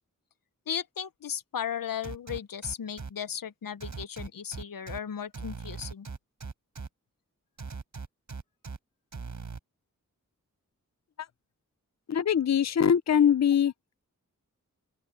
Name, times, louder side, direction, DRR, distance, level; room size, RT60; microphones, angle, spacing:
voice 1, 0.7-6.1, left 8 dB, 85° left, 0.9 m, -36 dB
sound 1, 2.0-3.1 3.8-5.0 5.3-6.9 7.6-8.8 9.1-9.6, right 4 dB, 65° right, 4.0 m, -39 dB
voice 2, 12.1-13.7, left 8 dB, 55° left, 0.6 m, -22 dB
open air
wide cardioid pair, 65°, 33 cm